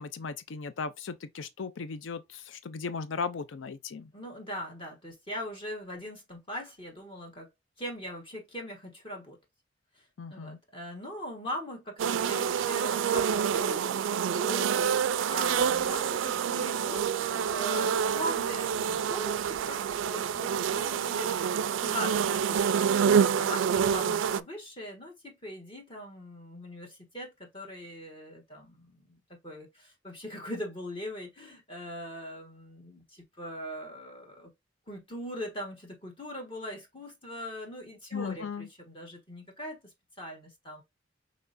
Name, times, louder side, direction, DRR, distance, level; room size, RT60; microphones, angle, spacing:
voice 1, 0.0-4.1 10.2-10.6 38.1-38.7, left 5 dB, 80° left, 0.5 m, -37 dB
voice 2, 4.1-7.5 7.8-9.4 9.9-29.2 29.4-34.5 34.9-39.8 40.2-40.8, equal, 30° left, 1.4 m, -41 dB
sound 1, 12.0-24.4, right 7 dB, 80° right, 0.3 m, -27 dB
5.9 x 3.2 x 2.6 m
head